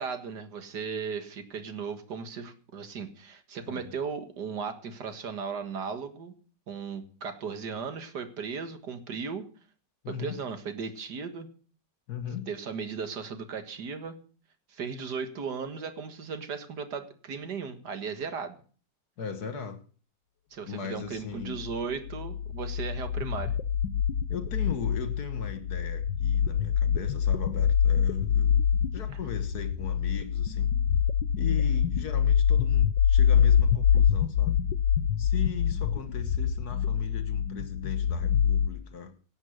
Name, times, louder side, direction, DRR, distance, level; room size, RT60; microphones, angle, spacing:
voice 1, 0.0-6.3 6.7-9.5 10.1-11.5 12.5-14.2 14.7-18.6 20.5-23.6, right 5 dB, 65° right, 8 dB, 2.2 m, -36 dB
voice 2, 10.0-10.4 12.1-12.5 19.2-19.8 20.7-21.6 24.3-28.7 28.9-30.7 31.3-34.6 35.2-39.1, left 7 dB, 60° left, 9 dB, 1.9 m, -38 dB
sound 1, 21.6-38.7, left 8 dB, 85° left, 1.5 m, -25 dB
17.5 x 7.4 x 6.5 m, 0.42 s
omnidirectional pair, 1.9 m